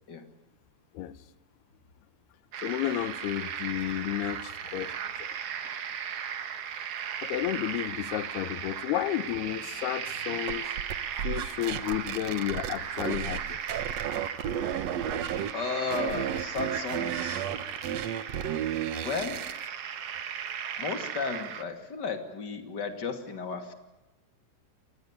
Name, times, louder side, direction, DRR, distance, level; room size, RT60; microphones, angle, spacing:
sound 1, 2.5-21.6, right 8 dB, 65° right, 1.5 m, -37 dB
voice 1, 2.6-5.4 7.2-10.7 11.2-13.6, left 13 dB, 75° left, 15 dB, 2.9 m, -32 dB
sound 2, 10.5-13.4 13.7-15.5 15.9-19.6, right 10 dB, 85° right, 1.4 m, -33 dB
voice 2, 15.5-17.5 19.0-19.5 20.8-23.7, left 5 dB, 30° left, 7 dB, 2.4 m, -34 dB
26.5 x 20.5 x 9.9 m, 1.1 s
omnidirectional pair, 4.9 m